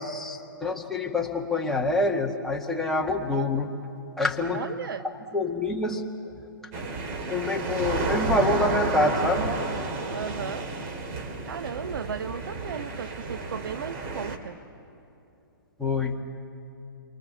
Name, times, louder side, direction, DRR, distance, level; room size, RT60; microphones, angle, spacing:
voice 1, 0.0-3.7 4.2-4.7 5.0-6.0 6.3-6.5 7.3-9.6 15.8-16.2, left 2 dB, ahead, -2 dB, 2.1 m, -26 dB
voice 2, 4.5-5.0 10.1-10.7 11.5-14.6, right 7 dB, 70° right, 14 dB, 0.6 m, -35 dB
sound 1, 6.7-14.4, right 3 dB, 40° right, 2.7 m, -31 dB
28.5 x 24.0 x 7.3 m, 2.8 s
hypercardioid pair, 130°, 12 cm